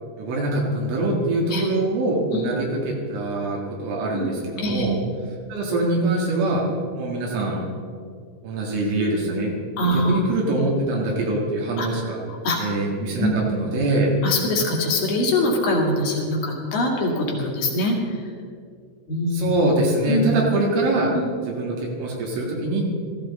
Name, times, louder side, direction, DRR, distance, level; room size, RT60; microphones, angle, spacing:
voice 1, 0.2-5.0 5.5-6.6 6.9-7.7 8.4-9.5 9.9-12.2 12.6-14.1 19.3-21.1 21.5-22.8, right 2 dB, 75° right, -3 dB, 4.3 m, -24 dB
voice 2, 4.6-4.9 9.8-10.2 11.8-11.9 12.4-12.6 13.2-13.4 14.2-18.0 19.1-19.5 20.1-20.3 21.1-21.3, left 1 dB, 55° left, -1 dB, 3.3 m, -23 dB
17.0 x 14.5 x 4.2 m, 2.2 s
omnidirectional pair, 5.7 m